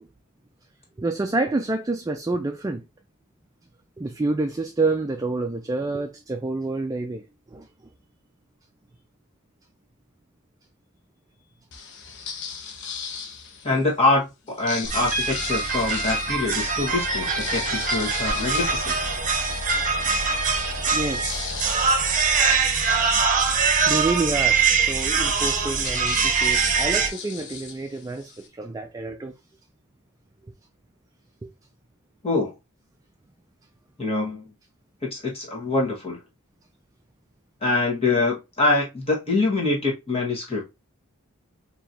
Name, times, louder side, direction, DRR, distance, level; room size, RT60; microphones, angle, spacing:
voice 1, 1.0-2.8 4.0-7.2 7.5-7.7 20.9-21.6 23.9-29.3 31.4-31.5, right 2 dB, 15° right, 0.4 m, -28 dB
sound 1, 11.7-13.9 14.5-19.6 20.1-20.2 20.5-28.5, left 6 dB, 55° left, 0.9 m, -38 dB
voice 2, 13.6-19.1 32.2-32.5 34.0-34.4 35.0-36.2 37.6-40.6, left 2 dB, 25° left, 1.6 m, -24 dB
sound 2, 14.8-27.1, right 5 dB, 35° right, 0.9 m, -23 dB
sound 3, 16.8-22.5, left 2 dB, 70° left, 1.2 m, -39 dB
4.5 x 3.0 x 2.8 m
head